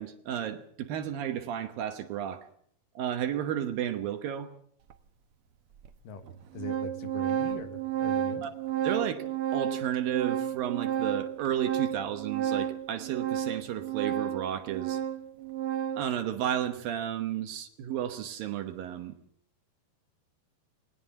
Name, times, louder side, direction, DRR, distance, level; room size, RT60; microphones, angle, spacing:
voice 1, 0.0-2.5 3.0-4.5 8.4-8.5 8.8-9.2 9.5-15.0 16.0-19.2, right 10 dB, 70° right, 8 dB, 2.8 m, -32 dB
Organ, 4.9-5.0 5.8-5.9 6.3-16.2, right 10 dB, 90° right, 1.2 m, -32 dB
voice 2, 6.5-8.5, left 5 dB, 65° left, 9 dB, 3.0 m, -41 dB
20.5 x 19.0 x 7.1 m, 0.62 s
omnidirectional pair, 4.5 m